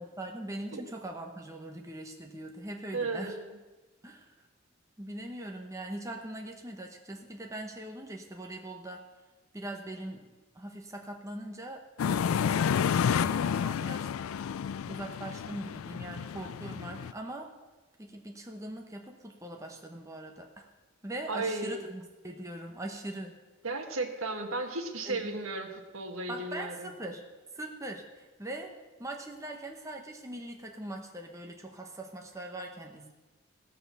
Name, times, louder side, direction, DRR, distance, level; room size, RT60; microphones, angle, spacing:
voice 1, 0.0-3.3 4.0-4.4 5.0-9.0 9.5-12.7 13.1-14.1 14.9-17.5 18.0-20.7 21.0-23.4 25.1-25.3 26.3-27.2 27.5-33.1, right 1 dB, 15° right, 2 dB, 1.0 m, -41 dB
voice 2, 2.9-3.4 21.3-21.8 23.6-26.9, right 2 dB, 85° right, 5 dB, 1.5 m, -34 dB
sound 1, 12.0-17.1, left 7 dB, 85° left, 0.3 m, -30 dB
16.5 x 6.8 x 6.9 m, 1.2 s
head